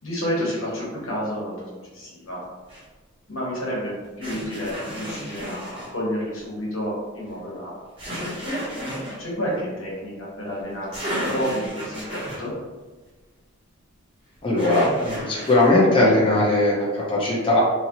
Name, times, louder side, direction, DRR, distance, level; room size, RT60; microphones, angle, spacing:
voice 1, 0.0-2.4 3.3-3.9 4.2-7.7 8.2-12.5, equal, 75° left, -5 dB, 1.1 m, -30 dB
sound 1, 2.7-2.8 4.2-5.9 8.0-9.2 10.6-10.7 10.9-12.5 14.6-15.7, equal, 25° right, 0.8 m, -32 dB
voice 2, 14.4-17.6, left 2 dB, 25° left, -6 dB, 0.6 m, -19 dB
2.8 x 2.5 x 2.9 m, 1.3 s
head